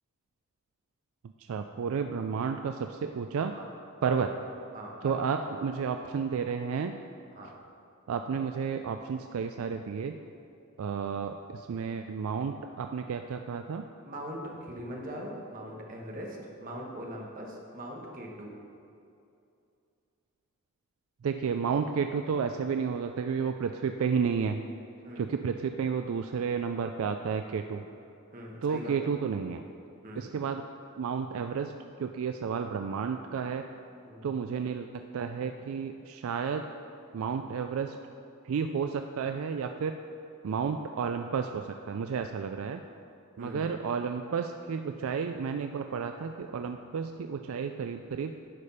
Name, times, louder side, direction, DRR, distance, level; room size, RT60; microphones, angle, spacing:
voice 1, 1.4-3.5 4.0-4.3 5.0-7.0 8.1-10.1 10.8-13.8 21.2-24.6 25.2-27.9 28.6-29.6 30.1-30.6 31.0-31.7 32.0-33.7 34.2-36.7 37.1-38.0 38.4-40.0 40.4-42.8 43.4-48.4, right 6 dB, 70° right, 6 dB, 0.3 m, -31 dB
voice 2, 4.7-5.5 7.3-7.6 14.0-18.5 25.0-25.2 27.9-28.0 28.3-28.9 30.0-30.3 34.0-34.3 43.4-43.7, equal, 40° right, -1 dB, 1.3 m, -41 dB
11.0 x 5.0 x 5.6 m, 2.6 s
head